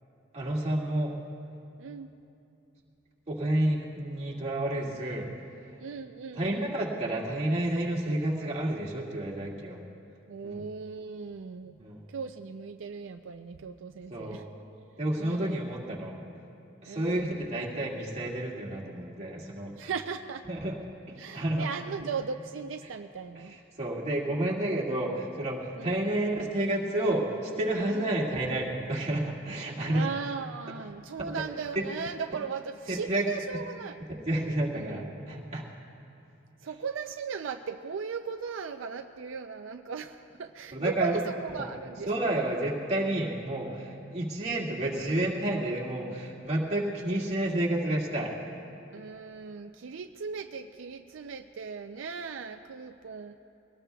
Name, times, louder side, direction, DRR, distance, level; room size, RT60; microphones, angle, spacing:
voice 1, 0.3-1.1 3.3-5.3 6.3-9.8 10.4-10.6 11.8-12.0 14.1-14.5 15.0-16.1 16.8-19.9 20.5-20.8 21.3-21.7 23.4-30.1 32.9-33.3 34.3-35.6 40.7-41.1 41.6-41.7 42.0-48.3, right 1 dB, 35° right, -4 dB, 2.0 m, -30 dB
voice 2, 1.8-2.1 5.8-6.7 10.3-11.8 12.1-14.4 15.2-15.6 16.9-17.3 19.8-20.4 21.2-23.5 25.8-25.9 27.9-28.1 29.9-34.0 34.7-35.0 36.6-42.1 48.9-53.4, right 5 dB, 80° right, 6 dB, 0.4 m, -37 dB
22.5 x 18.0 x 2.3 m, 2.8 s
head